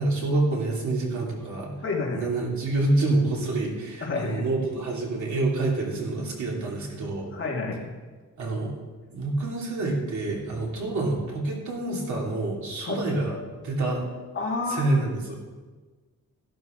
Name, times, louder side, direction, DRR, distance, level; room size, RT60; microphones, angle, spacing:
voice 1, 0.0-1.7 2.1-7.3 8.4-8.8 9.1-14.0 14.7-15.3, right 2 dB, 65° right, -3 dB, 3.1 m, -27 dB
voice 2, 1.8-2.3 4.0-4.4 5.8-6.4 7.3-7.9 12.9-13.0 14.3-14.9, left 3 dB, 40° left, -2 dB, 2.2 m, -30 dB
14.5 x 12.0 x 3.9 m, 1.3 s
wide cardioid pair, 180°, 31 cm